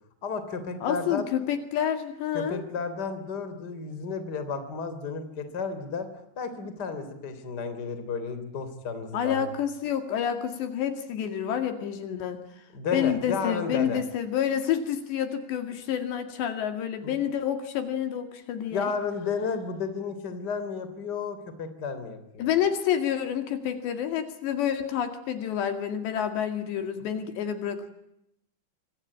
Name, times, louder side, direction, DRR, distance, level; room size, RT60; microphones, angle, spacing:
voice 1, 0.2-1.2 2.3-6.1 6.4-9.5 12.7-14.0 17.0-17.2 18.7-22.5, left 5 dB, 25° left, 10 dB, 3.2 m, -32 dB
voice 2, 0.8-2.6 9.1-12.4 12.9-18.9 22.4-27.9, left 9 dB, 70° left, 8 dB, 4.2 m, -28 dB
26.0 x 25.5 x 8.7 m, 0.80 s
omnidirectional pair, 5.4 m